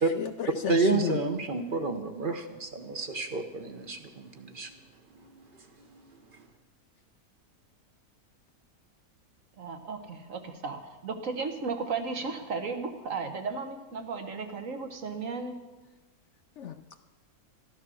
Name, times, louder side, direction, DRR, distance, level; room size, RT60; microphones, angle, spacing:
voice 1, 0.1-1.2 16.6-17.0, left 9 dB, 65° left, 9 dB, 0.8 m, -34 dB
voice 2, 0.7-4.7 5.1-5.3 5.9-6.0, right 3 dB, 40° right, 6 dB, 1.1 m, -30 dB
voice 3, 9.6-15.6, right 4 dB, 60° right, 5 dB, 1.6 m, -35 dB
13.5 x 11.5 x 6.3 m, 1.2 s
omnidirectional pair, 1.6 m